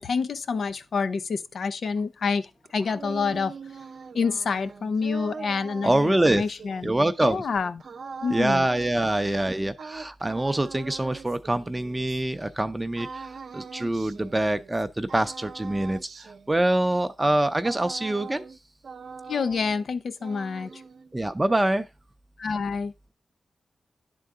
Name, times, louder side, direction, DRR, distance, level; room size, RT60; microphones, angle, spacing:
voice 1, 0.0-3.5 4.1-6.9 7.2-7.8 8.2-8.7 19.3-20.8 22.4-22.9, left 5 dB, 75° left, 0.6 m, -28 dB
sound 1, 2.6-12.5 13.0-14.8 15.1-18.6 18.8-19.9 20.2-21.1, right 5 dB, 70° right, 0.7 m, -42 dB
voice 2, 5.8-6.4 6.8-7.5 8.3-18.4 21.1-21.9, right 1 dB, 20° right, 0.5 m, -25 dB
10.5 x 3.9 x 3.6 m
cardioid pair, 75°, 0 cm